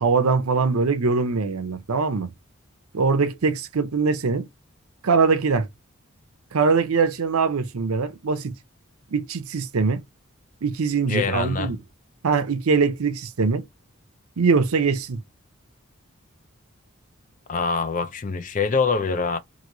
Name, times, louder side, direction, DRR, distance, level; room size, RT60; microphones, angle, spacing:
voice 1, 0.0-2.3 2.9-4.5 5.0-5.7 6.5-8.5 9.1-10.0 10.6-11.8 12.2-13.6 14.4-15.2, right 4 dB, 80° right, 0.6 m, -22 dB
voice 2, 11.1-11.7 17.5-19.4, left 5 dB, 35° left, 0.4 m, -24 dB
3.0 x 2.7 x 2.6 m
head